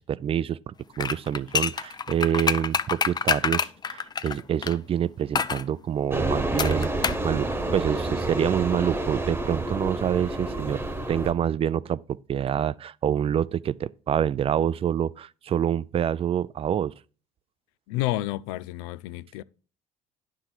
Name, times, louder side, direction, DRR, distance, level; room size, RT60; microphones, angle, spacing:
voice 1, 0.1-10.8 11.1-16.9, right 9 dB, 40° right, 0.4 m, -27 dB
sound 1, 1.0-4.8 5.3-5.6 6.6-7.3 7.5-7.6, left 6 dB, 30° left, 0.5 m, -26 dB
sound 2, 6.1-11.3, right 2 dB, 15° right, 1.2 m, -29 dB
voice 2, 17.9-19.4, left 16 dB, 90° left, 0.4 m, -30 dB
9.8 x 6.0 x 4.4 m
supercardioid pair, 80°, 15 cm